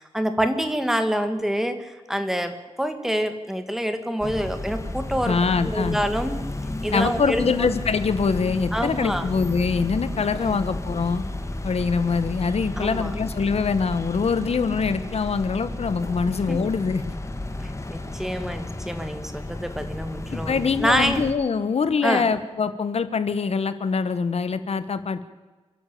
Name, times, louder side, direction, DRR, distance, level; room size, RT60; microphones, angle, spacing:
voice 1, 0.0-5.4 5.6-6.4 6.8-7.7 8.7-9.3 10.3-10.6 12.8-13.1 16.5-16.6 17.6-21.2 22.0-22.3, equal, 5° right, 8 dB, 2.0 m, -27 dB
sound 1, 4.2-21.3, left 2 dB, 25° left, 1.8 m, -32 dB
voice 2, 5.2-6.0 6.9-11.2 11.6-17.1 20.3-25.2, left 5 dB, 70° left, 12 dB, 1.4 m, -24 dB
28.0 x 11.0 x 8.6 m, 1.3 s
wide cardioid pair, 135°, 11 cm